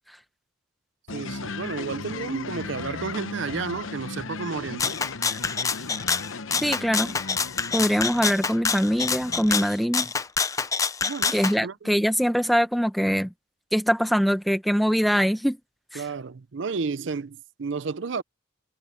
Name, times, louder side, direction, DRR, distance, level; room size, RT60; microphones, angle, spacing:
sound 1, 1.1-9.6, left 4 dB, 85° left, 0.9 m, -37 dB
voice 1, 1.1-4.9 11.0-12.1 16.0-18.2, right 5 dB, 70° right, 0.6 m, -32 dB
Rattle (instrument), 4.8-11.5, left 5 dB, 15° left, 0.4 m, -26 dB
voice 2, 6.6-7.1 7.7-10.1 11.3-13.3 13.7-15.6 15.9-16.0, equal, ahead, 1.0 m, -23 dB
head